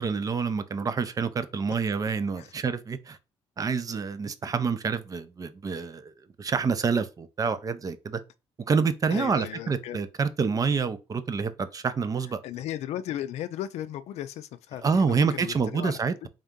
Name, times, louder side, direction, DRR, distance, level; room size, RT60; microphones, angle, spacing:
voice 1, 0.0-3.2 3.6-6.1 6.4-8.2 8.7-12.4 14.8-16.3, right 5 dB, 35° right, 0.5 m, -27 dB
voice 2, 9.1-10.0 12.4-16.0, left 12 dB, 80° left, 0.4 m, -36 dB
3.6 x 2.7 x 3.6 m
cardioid pair, 100°, 11 cm